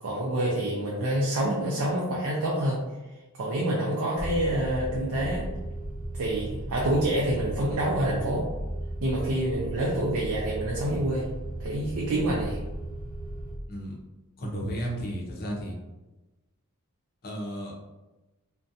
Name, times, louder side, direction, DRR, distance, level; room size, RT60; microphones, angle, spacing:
voice 1, 0.0-2.8 3.4-5.5 6.1-8.5 9.0-11.3 11.6-12.6, right 1 dB, 70° right, -3 dB, 0.5 m, -27 dB
sound 1, 4.2-13.6, right 1 dB, 5° right, 0.5 m, -36 dB
voice 2, 14.4-15.8 17.2-17.8, equal, 45° left, -1 dB, 0.6 m, -33 dB
2.5 x 2.2 x 2.6 m, 1.1 s
head